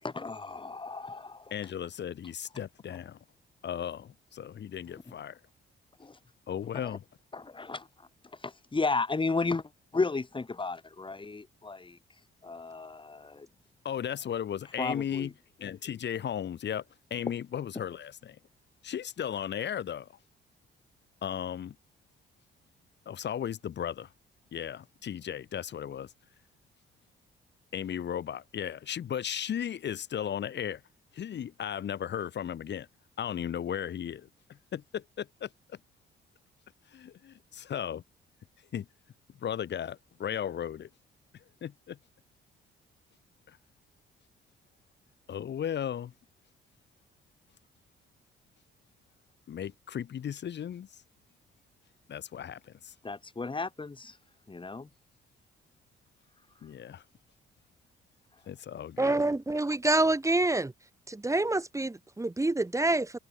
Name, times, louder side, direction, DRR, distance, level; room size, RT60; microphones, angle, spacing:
voice 1, 0.0-1.5 5.1-5.2 6.0-6.2 6.8-7.0 7.3-12.0 12.4-13.5 14.8-15.3 53.0-54.2 54.5-54.9, left 3 dB, 25° left, 7.7 m, -34 dB
voice 2, 1.5-3.2 3.6-5.4 6.5-7.0 13.8-15.3 15.6-18.4 18.8-20.2 21.2-21.8 23.1-24.1 24.5-26.1 27.7-30.8 31.1-32.9 33.2-35.8 36.9-38.0 38.7-38.9 39.4-40.9 41.3-42.0 43.5-43.6 45.3-46.1 49.5-51.0 52.1-52.9 56.6-57.0 58.5-59.2, left 9 dB, 60° left, 6.2 m, -36 dB
voice 3, 59.0-60.7 61.1-63.2, right 2 dB, 15° right, 3.6 m, -27 dB
open air
cardioid pair, 90°, 20 cm